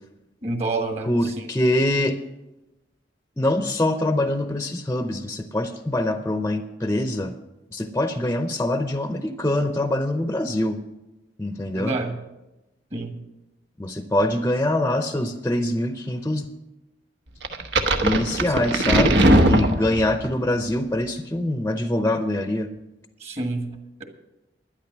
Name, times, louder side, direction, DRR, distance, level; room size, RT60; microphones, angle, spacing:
voice 1, 0.4-1.5 11.7-12.2 12.9-13.2 18.3-18.4 23.2-24.0, right 2 dB, 35° right, 5 dB, 1.6 m, -29 dB
voice 2, 1.1-2.2 3.4-7.3 7.7-10.8 11.4-12.0 13.8-16.5 18.0-22.7, left 1 dB, 15° left, 8 dB, 0.6 m, -24 dB
sound 1, 17.4-20.3, right 1 dB, 80° right, 1.1 m, -19 dB
12.0 x 10.0 x 6.1 m, 0.98 s
head